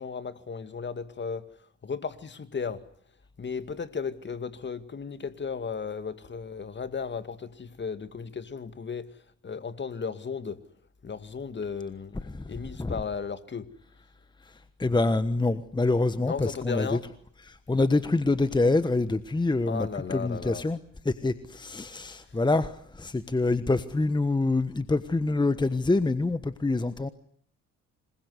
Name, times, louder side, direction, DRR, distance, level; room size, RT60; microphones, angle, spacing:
voice 1, 0.0-1.4 1.8-2.8 3.4-9.1 9.4-10.6 11.0-13.7 16.2-17.0 19.7-20.7, left 5 dB, 35° left, 2.2 m, -35 dB
voice 2, 14.8-17.0 17.5-20.8 21.0-27.1, left 2 dB, 15° left, 1.3 m, -26 dB
27.0 x 21.5 x 9.6 m
cardioid pair, 90°, 30 cm